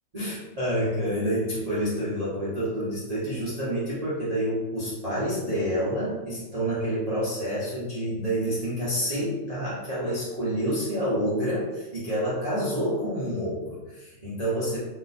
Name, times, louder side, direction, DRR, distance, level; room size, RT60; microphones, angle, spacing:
voice 1, 0.1-14.8, equal, 40° right, -10 dB, 0.5 m, -28 dB
3.0 x 3.0 x 4.1 m, 1.1 s
omnidirectional pair, 2.3 m